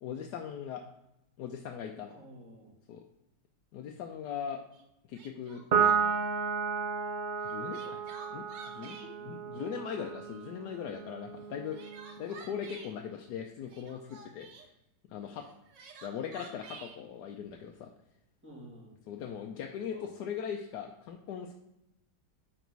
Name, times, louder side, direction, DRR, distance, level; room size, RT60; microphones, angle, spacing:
voice 1, 0.0-0.8 1.4-2.1 2.9-3.0 3.7-4.6 5.1-5.6 7.4-8.0 8.3-11.8 12.2-14.5 15.1-15.5 16.0-17.9 19.1-21.5, left 8 dB, 75° left, 2 dB, 1.2 m, -39 dB
voice 2, 2.1-2.7 9.1-9.4 18.4-18.9 19.7-20.1, equal, 5° right, -6 dB, 2.6 m, -52 dB
Crying sobbing, 4.7-4.8 5.1-6.2 7.4-9.1 9.6-10.4 11.4-12.9 13.6-14.7 15.4-17.0, right 5 dB, 90° right, 1.6 m, -50 dB
Piano, 5.7-12.4, right 6 dB, 65° right, 0.5 m, -33 dB
9.1 x 4.1 x 4.0 m, 0.87 s
omnidirectional pair, 1.9 m